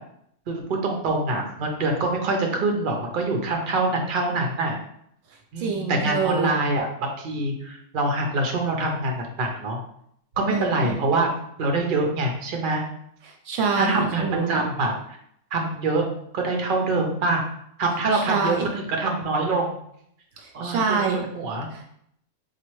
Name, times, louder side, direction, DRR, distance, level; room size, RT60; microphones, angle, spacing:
voice 1, 0.5-4.8 5.5-9.8 10.4-11.3 11.6-12.8 13.8-14.9 15.5-16.1 16.3-17.4 17.8-19.7 20.5-21.0 21.3-21.7, right 2 dB, 50° right, 2 dB, 0.7 m, -25 dB
voice 2, 5.6-6.5 10.5-11.0 13.5-14.6 18.1-18.7 20.4-21.3 21.7-21.9, right 5 dB, 75° right, 2 dB, 0.9 m, -26 dB
4.1 x 2.4 x 3.1 m, 0.70 s
omnidirectional pair, 1.3 m